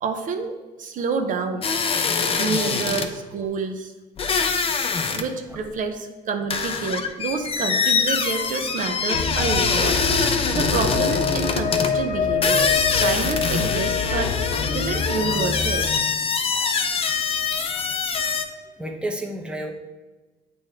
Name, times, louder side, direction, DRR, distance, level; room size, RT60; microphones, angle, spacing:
voice 1, 0.0-1.8 2.4-3.9 5.1-14.4 14.7-15.9 16.5-16.8, right 4 dB, 50° right, 5 dB, 0.7 m, -28 dB
sound 1, 1.6-3.1 4.2-5.3 5.5-5.6 6.5-11.9 12.4-18.4, left 5 dB, 35° left, 0.6 m, -24 dB
sound 2, 9.1-16.0, left 5 dB, 75° left, 0.8 m, -26 dB
voice 2, 17.5-17.9 18.8-19.7, right 1 dB, 5° right, 2 dB, 0.9 m, -31 dB
8.6 x 3.6 x 4.5 m, 1.2 s
cardioid pair, 110°, 17 cm